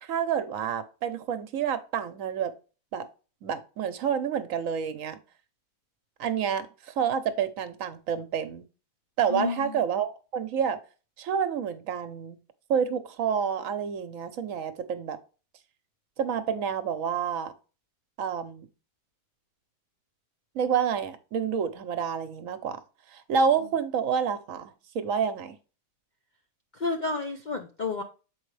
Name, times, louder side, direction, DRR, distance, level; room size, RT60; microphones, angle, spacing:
voice 1, 0.0-2.5 2.9-3.0 3.4-5.2 6.2-8.7 9.2-10.8 11.2-12.4 12.7-15.2 16.2-17.5 18.2-18.7 20.5-22.8 23.1-25.6, right 7 dB, 65° right, 1.1 m, -28 dB
voice 2, 9.3-9.8 26.7-28.0, left 3 dB, 50° left, 0.5 m, -31 dB
7.1 x 4.6 x 3.2 m
omnidirectional pair, 1.5 m